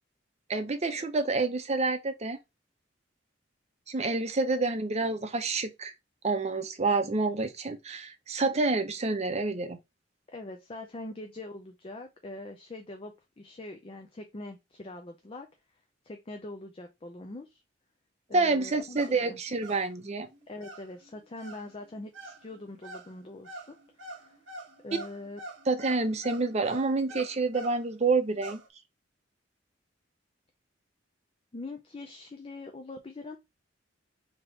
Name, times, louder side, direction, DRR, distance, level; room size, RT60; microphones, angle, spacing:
voice 1, 0.5-2.4 3.9-5.9 6.2-9.8 18.3-20.3 25.7-28.6, right 3 dB, 35° right, 0.6 m, -28 dB
voice 2, 10.3-15.5 16.0-17.6 18.3-19.4 20.5-23.8 24.1-24.4 24.8-25.4 31.5-33.4, left 2 dB, 30° left, 0.5 m, -43 dB
sound 1, 18.8-19.2 19.5-19.9 20.2-27.8 28.2-28.7, right 1 dB, 85° right, 0.9 m, -46 dB
3.5 x 2.8 x 3.9 m
head